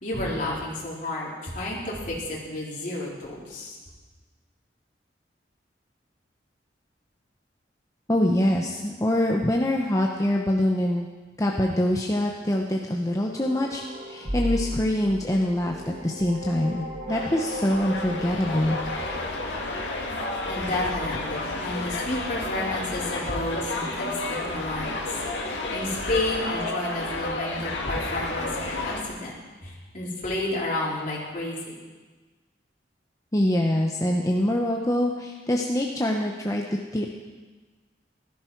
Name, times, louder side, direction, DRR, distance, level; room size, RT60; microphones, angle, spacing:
voice 1, 0.0-3.8 20.5-25.0 25.4-29.3 29.6-31.6, left 1 dB, 45° left, -5 dB, 3.5 m, -31 dB
voice 2, 8.1-11.1 11.4-18.8 33.3-36.6 36.9-37.1, left 1 dB, 20° left, 0 dB, 0.9 m, -24 dB
sound 1, 13.3-19.2, equal, 40° right, 3.2 m, -35 dB
sound 2, 17.1-29.0, left 2 dB, 85° left, 2.0 m, -31 dB
15.5 x 13.0 x 4.6 m, 1.3 s
head